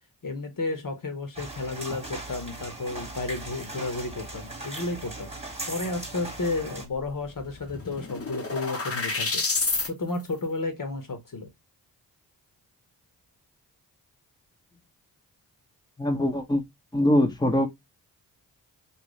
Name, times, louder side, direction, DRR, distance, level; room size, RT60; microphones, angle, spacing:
voice 1, 0.2-5.3 5.7-9.4 9.9-11.5, left 3 dB, 50° left, 1.3 m, -32 dB
sound 1, 1.4-6.9, right 2 dB, 15° right, 1.4 m, -38 dB
sound 2, 7.0-7.1 7.4-9.9, left 3 dB, 35° left, 1.1 m, -29 dB
voice 2, 16.0-16.6 16.9-17.7, left 1 dB, 10° left, 1.1 m, -22 dB
3.0 x 2.7 x 3.1 m
supercardioid pair, 45°, 43 cm